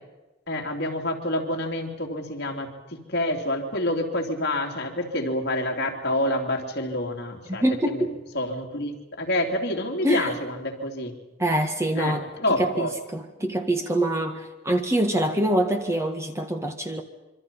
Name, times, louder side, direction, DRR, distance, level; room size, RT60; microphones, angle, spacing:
voice 1, 0.5-8.1 8.3-11.1 11.9-12.9, left 1 dB, 55° left, 1 dB, 3.3 m, -28 dB
voice 2, 7.5-8.1 10.0-10.3 11.4-12.3 12.6-17.0, right 1 dB, 15° right, 5 dB, 1.8 m, -25 dB
26.5 x 24.5 x 5.7 m, 1.0 s
head